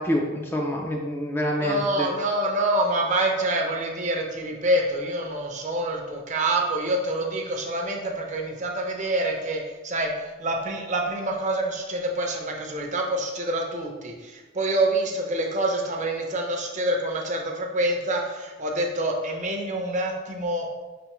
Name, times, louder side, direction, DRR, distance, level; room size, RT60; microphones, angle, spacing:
voice 1, 0.0-2.1, equal, 10° left, 0 dB, 0.3 m, -27 dB
voice 2, 1.6-20.7, right 1 dB, 35° right, 1 dB, 0.6 m, -26 dB
4.9 x 3.4 x 3.0 m, 1.2 s
head